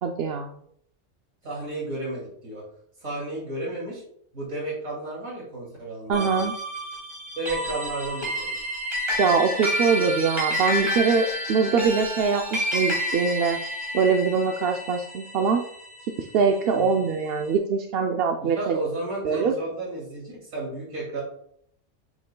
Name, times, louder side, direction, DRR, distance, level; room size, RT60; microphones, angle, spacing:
voice 1, 0.0-0.5 6.1-6.5 9.2-13.6 13.9-15.6 16.3-18.8 19.2-19.5, right 5 dB, 60° right, 3 dB, 0.7 m, -23 dB
voice 2, 1.4-2.6 3.0-4.0 4.3-6.4 7.4-8.5 16.7-17.0 18.4-21.2, right 2 dB, 85° right, -4 dB, 2.8 m, -33 dB
sound 1, 6.1-16.7, equal, 20° right, 2.3 m, -30 dB
7.6 x 6.1 x 2.2 m, 0.65 s
omnidirectional pair, 1.3 m